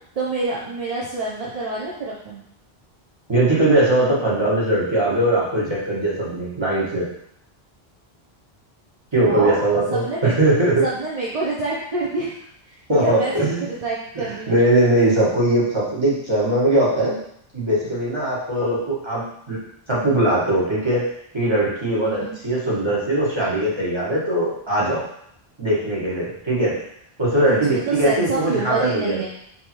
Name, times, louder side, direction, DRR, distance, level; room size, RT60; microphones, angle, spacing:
voice 1, 0.2-2.4 9.2-9.6 9.9-10.3 10.8-13.3 13.6-14.6 22.0-22.4 27.5-29.3, right 3 dB, 45° right, -5 dB, 0.6 m, -27 dB
voice 2, 3.3-7.1 9.1-10.8 12.9-13.6 14.1-17.2 17.5-19.6 19.9-21.0 21.3-25.0 25.6-26.7 27.2-29.2, right 1 dB, 25° right, -7 dB, 1.3 m, -20 dB
3.4 x 2.9 x 4.4 m, 0.71 s
omnidirectional pair, 1.1 m